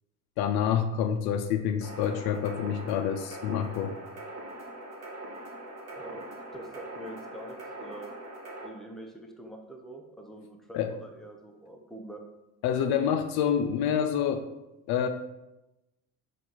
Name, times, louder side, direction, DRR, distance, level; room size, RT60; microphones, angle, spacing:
voice 1, 0.4-4.0 10.7-10.9 12.6-14.5 14.9-15.1, left 8 dB, 55° left, 7 dB, 0.5 m, -27 dB
sound 1, 1.8-8.7, right 1 dB, 35° right, 1.2 m, -42 dB
voice 2, 5.9-8.1 8.6-12.2, right 1 dB, ahead, 2 dB, 0.6 m, -45 dB
4.3 x 2.6 x 4.0 m, 0.95 s
hypercardioid pair, 65°, 46 cm